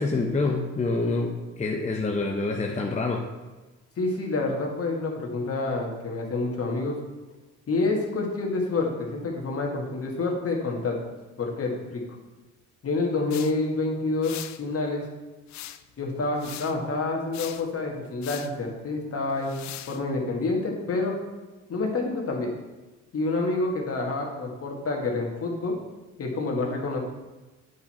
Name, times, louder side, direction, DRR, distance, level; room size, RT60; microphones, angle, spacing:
voice 1, 0.0-3.3, left 3 dB, 25° left, 1 dB, 0.7 m, -26 dB
voice 2, 4.0-7.0 7.7-11.0 11.4-12.0 12.8-15.0 16.0-21.1 21.7-22.5 23.1-25.8 26.2-27.0, left 3 dB, 50° left, 0 dB, 1.7 m, -28 dB
sound 1, 13.3-13.5 14.2-14.6 15.5-15.9 16.4-16.8 17.3-17.7 18.2-18.5 19.4-20.0, left 12 dB, 65° left, 0.5 m, -40 dB
8.4 x 4.6 x 4.3 m, 1.2 s
cardioid pair, 90°, 30 cm